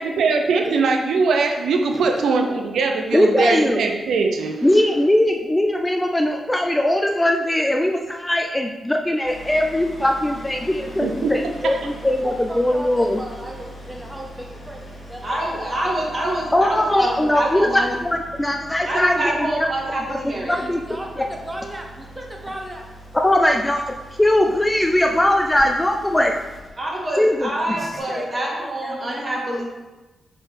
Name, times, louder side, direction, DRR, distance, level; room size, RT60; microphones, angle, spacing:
voice 1, 0.0-4.7 11.0-11.8, right 4 dB, 85° right, 4 dB, 0.6 m, -21 dB
voice 2, 1.9-2.2 12.0-15.2 15.6-16.1 20.4-22.8 27.5-29.6, right 1 dB, 10° right, 0 dB, 0.9 m, -36 dB
voice 3, 3.1-3.8 4.6-13.2 16.5-19.5 20.2-20.8 23.2-26.3 27.2-27.5, left 1 dB, 10° left, 3 dB, 0.4 m, -20 dB
sound 1, 9.2-28.0, right 1 dB, 25° left, 2.0 m, -41 dB
voice 4, 15.2-18.0 18.8-20.5 26.8-29.6, right 1 dB, 30° right, -3 dB, 1.9 m, -26 dB
6.3 x 4.3 x 4.6 m, 1.1 s
wide cardioid pair, 115°, 0 cm